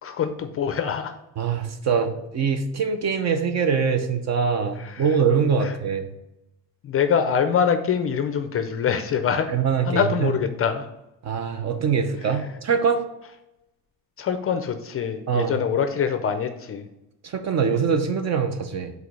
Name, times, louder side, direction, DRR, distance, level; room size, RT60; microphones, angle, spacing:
voice 1, 0.0-1.2 4.8-5.1 5.6-5.7 6.8-9.5 9.8-10.9 12.2-12.5 14.2-16.9, left 7 dB, 35° left, 8 dB, 0.4 m, -24 dB
voice 2, 1.4-6.1 9.5-10.3 11.2-13.0 15.3-15.5 17.2-18.9, right 6 dB, 40° right, 8 dB, 0.7 m, -23 dB
4.8 x 4.0 x 5.3 m, 0.89 s
cardioid pair, 150°, 40 cm